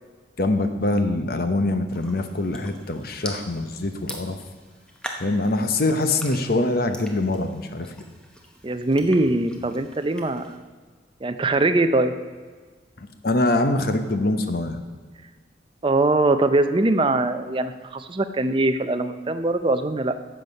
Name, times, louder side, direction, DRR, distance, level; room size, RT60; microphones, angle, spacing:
voice 1, 0.4-4.4 5.2-7.9 13.2-14.8, left 2 dB, 50° left, 8 dB, 0.9 m, -24 dB
sound 1, 1.9-10.6, equal, 5° left, 0.9 m, -42 dB
voice 2, 8.6-10.6 11.2-12.1 15.8-20.2, right 2 dB, 25° right, 9 dB, 0.5 m, -22 dB
12.0 x 7.9 x 5.3 m, 1.5 s
head